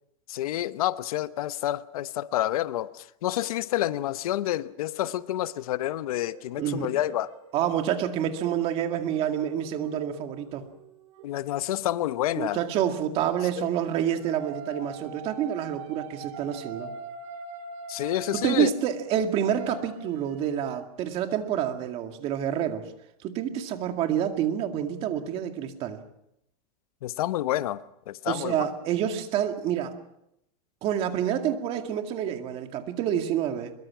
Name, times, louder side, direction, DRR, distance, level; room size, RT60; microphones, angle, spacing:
voice 1, 0.3-7.3 11.2-12.6 13.6-13.7 17.9-18.7 27.0-28.5, left 13 dB, 80° left, 0.9 m, -29 dB
sound 1, 6.1-11.3 13.2-20.8, right 5 dB, 55° right, 3.6 m, -44 dB
voice 2, 6.6-7.0 7.5-10.6 12.4-16.9 18.4-22.9 23.2-26.0 28.3-29.9 30.8-33.7, right 10 dB, 30° right, 2.2 m, -28 dB
24.0 x 22.5 x 6.1 m
supercardioid pair, 165°, 19 cm